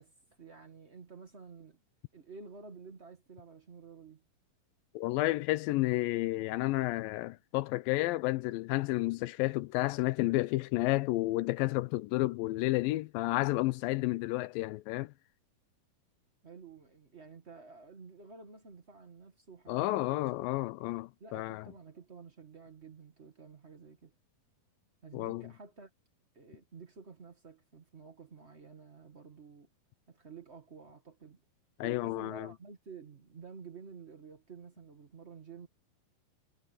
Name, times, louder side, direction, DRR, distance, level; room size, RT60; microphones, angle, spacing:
voice 1, 0.0-1.8 2.1-4.2 16.4-20.4 21.2-24.1 25.0-25.9 26.3-29.7 30.1-31.4 31.8-35.7, right 5 dB, 55° right, 0.7 m, -51 dB
voice 2, 5.0-15.1 19.7-21.6 25.1-25.4 31.8-32.5, left 19 dB, 80° left, 2.2 m, -31 dB
omnidirectional pair, 4.3 m